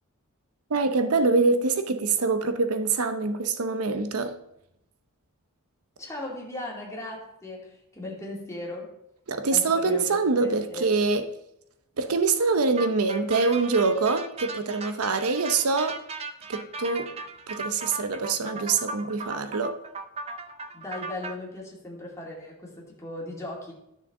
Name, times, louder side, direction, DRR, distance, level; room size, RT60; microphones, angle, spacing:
voice 1, 0.7-4.4 9.3-11.2 12.0-16.0 16.5-17.2 17.5-19.8, right 4 dB, 85° right, 0.8 m, -25 dB
voice 2, 6.0-9.0 9.5-10.9 20.7-23.7, left 1 dB, 15° left, 2.4 m, -37 dB
sound 1, 12.8-21.3, right 3 dB, 30° right, 0.6 m, -37 dB
12.0 x 6.4 x 3.7 m
head